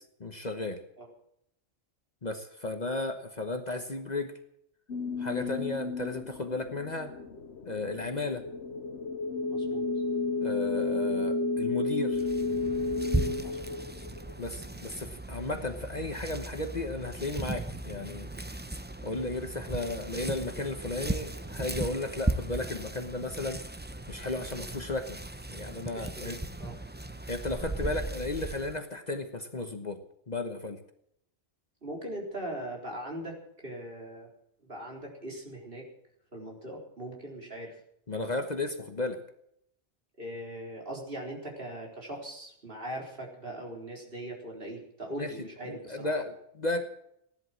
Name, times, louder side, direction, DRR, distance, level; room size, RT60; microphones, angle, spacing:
voice 1, 0.2-0.8 2.2-4.3 5.2-7.1 7.6-8.4 10.4-12.3 14.4-18.3 19.0-23.6 24.1-25.2 25.5-26.4 27.3-30.8 38.1-39.2 45.2-46.9, left 2 dB, 40° left, 7 dB, 1.2 m, -34 dB
sound 1, 4.9-14.7, left 3 dB, 75° left, 1.2 m, -32 dB
voice 2, 9.5-9.9 13.4-14.0 25.9-26.8 31.8-34.3 34.6-35.9 36.3-37.8 40.2-46.1, right 1 dB, 55° right, -1 dB, 4.4 m, -40 dB
sound 2, 12.1-28.8, right 2 dB, 10° right, 0.6 m, -37 dB
16.5 x 11.5 x 7.5 m, 0.73 s
omnidirectional pair, 1.2 m